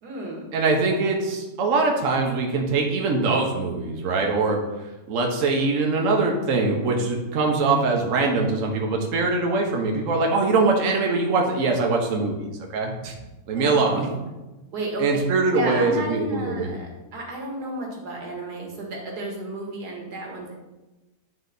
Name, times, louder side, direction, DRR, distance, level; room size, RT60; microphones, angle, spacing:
voice 1, 0.0-0.5 13.6-14.3 14.7-15.0 15.5-20.5, right 1 dB, 90° right, -1 dB, 1.9 m, -33 dB
voice 2, 0.5-4.6 5.1-13.1 13.5-14.1 15.0-16.7, right 3 dB, 60° right, 1 dB, 1.2 m, -22 dB
9.2 x 3.3 x 3.9 m, 1.1 s
omnidirectional pair, 1.6 m